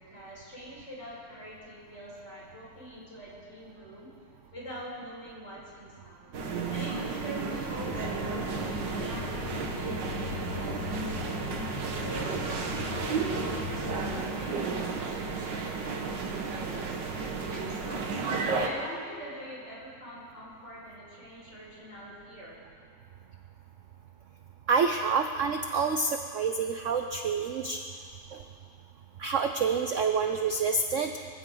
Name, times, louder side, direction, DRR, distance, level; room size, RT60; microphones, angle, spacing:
voice 1, 0.0-4.1 4.5-6.3 6.7-11.5 12.0-17.0 17.4-18.2 18.6-22.6, equal, 40° left, -6 dB, 5.4 m, -44 dB
sound 1, 6.3-18.7, right 4 dB, 75° right, 2.0 m, -33 dB
sound 2, 7.8-14.2, left 12 dB, 85° left, 1.4 m, -40 dB
voice 2, 24.7-27.8 28.3-28.4 29.2-31.1, right 5 dB, 60° right, 6 dB, 0.9 m, -27 dB
24.5 x 15.0 x 3.9 m, 2.2 s
omnidirectional pair, 1.9 m